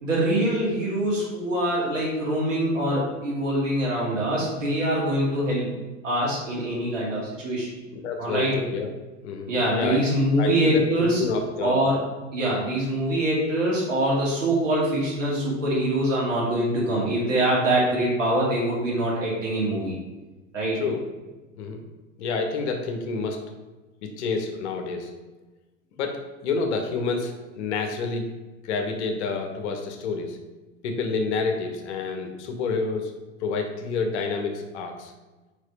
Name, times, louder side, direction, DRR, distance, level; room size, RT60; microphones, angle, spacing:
voice 1, 0.0-5.7 6.0-7.7 8.2-8.6 9.5-11.2 11.6-12.0 12.3-20.0 20.5-20.8, right 1 dB, 75° right, -5 dB, 2.3 m, -24 dB
voice 2, 7.9-8.9 9.2-10.0 10.4-11.8 20.7-21.0 21.6-21.8 22.2-23.4 24.0-25.1 26.0-28.3 28.6-30.4 30.8-33.1 33.4-35.1, left 4 dB, 60° left, 4 dB, 1.2 m, -28 dB
5.0 x 4.7 x 5.4 m, 1.2 s
hypercardioid pair, 90°, 38 cm